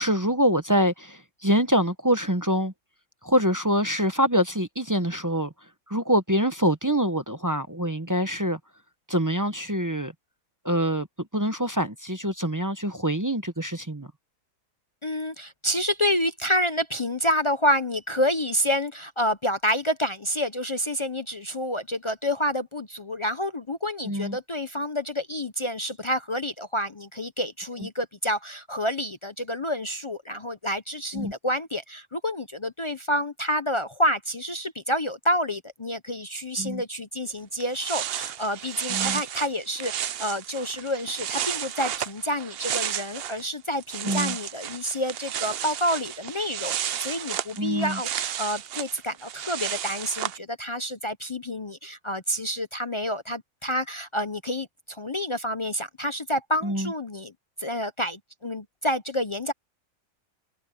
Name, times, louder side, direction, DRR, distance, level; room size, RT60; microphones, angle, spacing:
voice 1, 0.0-2.7 3.2-5.5 5.9-8.6 9.1-10.1 10.6-11.1 11.3-14.1 24.0-24.4 31.1-31.3 36.6-36.8 38.9-39.2 44.0-44.4 47.6-48.0 56.6-56.9, equal, 15° right, 0.8 m, -25 dB
voice 2, 15.0-57.3 57.6-59.5, equal, 40° left, 0.4 m, -28 dB
sound 1, 37.3-37.4 37.6-43.4 43.7-50.4, right 10 dB, 60° right, 0.6 m, -32 dB
omnidirectional pair, 1.6 m